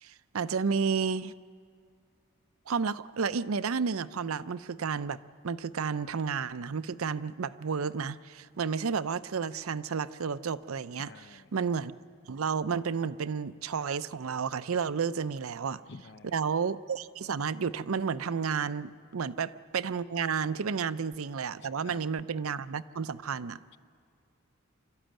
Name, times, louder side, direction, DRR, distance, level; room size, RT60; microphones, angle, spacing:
voice 1, 0.0-1.3 2.7-5.2 5.4-11.1 11.5-11.9 12.3-15.8 16.2-23.6, right 6 dB, 85° right, 14 dB, 0.6 m, -31 dB
voice 2, 11.0-11.5 15.9-16.4 21.6-22.0, left 4 dB, 55° left, 11 dB, 0.6 m, -50 dB
25.5 x 13.5 x 9.0 m, 2.2 s
head